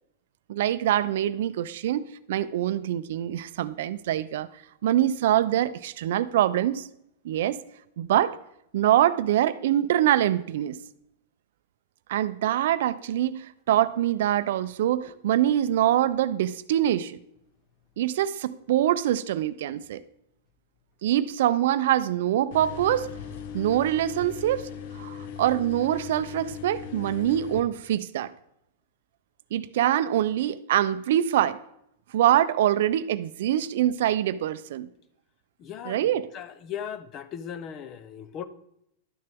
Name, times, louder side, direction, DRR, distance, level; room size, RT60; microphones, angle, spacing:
voice 1, 0.5-4.5 4.8-6.9 7.2-7.6 8.0-8.4 8.7-10.8 12.1-17.2 18.0-20.0 21.0-23.1 23.5-24.7 25.0-28.3 29.5-31.6 32.1-34.9 35.8-36.3, right 12 dB, 65° right, 0.5 m, -24 dB
sound 1, 22.5-27.6, left 8 dB, 55° left, 0.9 m, -39 dB
voice 2, 35.6-38.5, left 8 dB, 30° left, 0.7 m, -38 dB
12.0 x 6.7 x 3.5 m
supercardioid pair, 155°, 0 cm